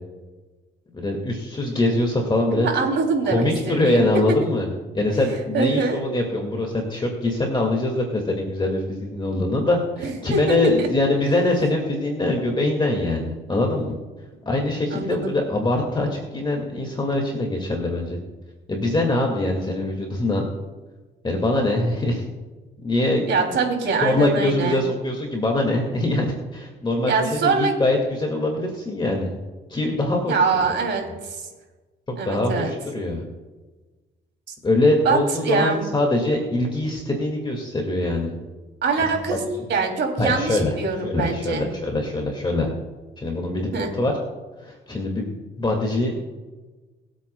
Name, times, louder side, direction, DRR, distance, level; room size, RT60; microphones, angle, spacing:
voice 1, 0.9-2.7 3.2-14.0 14.5-18.2 18.7-20.5 21.2-22.2 22.8-23.2 24.0-29.4 29.7-30.7 32.1-33.2 34.6-38.3 39.3-39.7 40.2-40.7 41.0-42.7 43.2-44.1 44.6-46.2, left 2 dB, 25° left, 1 dB, 2.0 m, -23 dB
voice 2, 2.5-4.4 5.5-6.0 10.0-11.2 14.9-15.3 23.3-24.8 27.1-27.8 30.3-31.5 32.2-32.7 35.0-35.9 38.8-39.4 39.7-41.6 43.7-43.9, right 4 dB, 65° right, 2 dB, 2.9 m, -24 dB
22.0 x 8.3 x 2.2 m, 1.3 s
cardioid pair, 90°, 20 cm